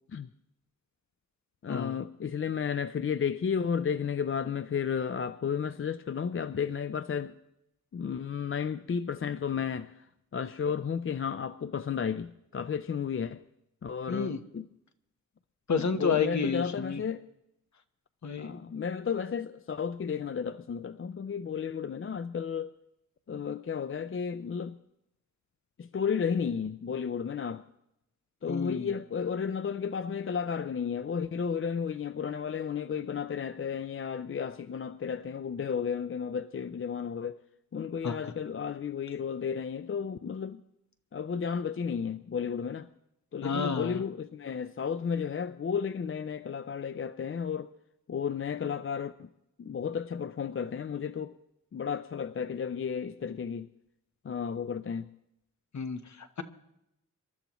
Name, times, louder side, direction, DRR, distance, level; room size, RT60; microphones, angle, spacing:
voice 1, 1.6-7.3 7.9-10.0 10.3-13.4 13.8-14.7 15.8-17.2 18.4-22.7 23.3-24.8 25.8-27.6 28.4-37.4 37.7-40.6 41.1-42.9 43.3-47.7 48.1-49.3 49.6-51.3 51.7-53.7 54.2-55.1, left 7 dB, 40° left, 0.4 m, -33 dB
voice 2, 14.1-14.4 15.7-17.0 18.2-18.6 28.5-28.9 38.0-38.1 43.4-44.0 55.7-56.4, left 5 dB, 60° left, 1.1 m, -30 dB
26.5 x 13.0 x 3.0 m
wide cardioid pair, 115°, 32 cm